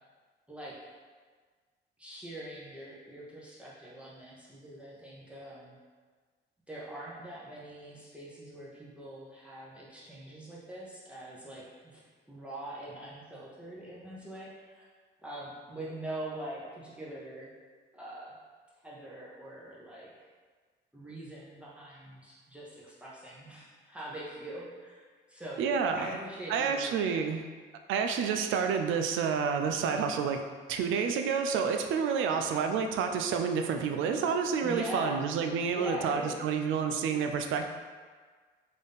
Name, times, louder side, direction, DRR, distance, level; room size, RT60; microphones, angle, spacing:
voice 1, 0.5-0.8 2.0-5.8 6.7-12.0 12.3-14.8 15.2-17.5 17.9-18.3 18.8-20.1 20.9-25.0 25.3-25.7 25.9-26.9 32.2-32.5 34.6-35.2 35.7-36.4, right 1 dB, 5° right, -7 dB, 0.8 m, -43 dB
voice 2, 25.6-26.1 26.5-27.4 27.9-30.4 30.7-37.7, right 6 dB, 80° right, 5 dB, 0.4 m, -29 dB
3.9 x 2.6 x 3.5 m, 1.5 s
cardioid pair, 90°, 20 cm